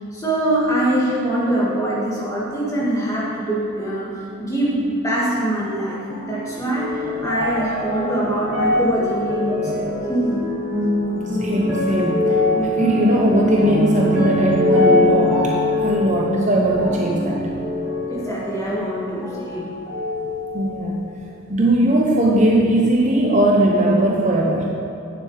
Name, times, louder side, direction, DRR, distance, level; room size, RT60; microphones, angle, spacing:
voice 1, 0.0-4.1 4.4-10.6 18.1-19.7, right 1 dB, 15° left, -6 dB, 1.8 m, -23 dB
sound 1, 6.1-19.5 19.9-20.8 21.5-21.6, left 2 dB, 10° right, 2.2 m, -23 dB
voice 2, 11.3-15.5 15.8-17.4 20.5-21.0 21.5-24.7, right 1 dB, 35° right, -1 dB, 0.7 m, -19 dB
9.5 x 7.2 x 4.8 m, 2.9 s
head